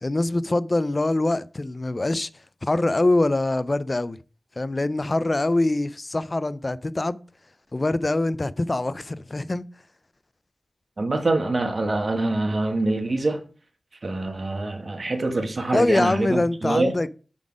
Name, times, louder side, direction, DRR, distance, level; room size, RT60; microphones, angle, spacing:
voice 1, 0.0-2.3 2.6-4.2 4.6-7.2 7.7-9.6 15.7-17.1, left 2 dB, 30° left, 0.4 m, -24 dB
voice 2, 11.0-13.4 14.0-16.9, right 2 dB, 45° right, 1.3 m, -25 dB
7.1 x 4.0 x 5.0 m
wide cardioid pair, 95°, 0 cm